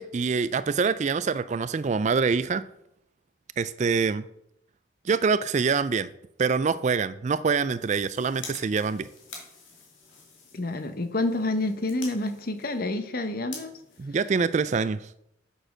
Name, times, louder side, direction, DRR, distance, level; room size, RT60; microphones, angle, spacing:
voice 1, 0.0-2.6 3.6-4.2 5.1-6.1 6.4-9.1 14.0-15.0, right 5 dB, 35° right, 15 dB, 0.3 m, -25 dB
sound 1, 7.6-14.9, left 4 dB, 70° left, 2.7 m, -47 dB
voice 2, 10.5-13.7, left 2 dB, 45° left, 9 dB, 0.9 m, -28 dB
7.8 x 6.5 x 6.2 m, 0.76 s
head